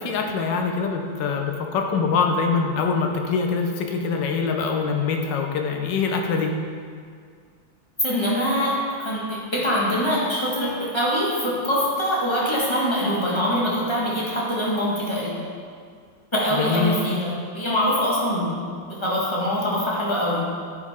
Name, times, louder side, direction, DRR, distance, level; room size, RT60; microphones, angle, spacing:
voice 1, 0.0-6.5 16.6-16.9, left 5 dB, 70° left, 3 dB, 1.4 m, -24 dB
voice 2, 8.0-15.5 16.3-20.5, equal, 15° left, -6 dB, 1.4 m, -24 dB
9.7 x 5.5 x 3.6 m, 2.1 s
omnidirectional pair, 2.2 m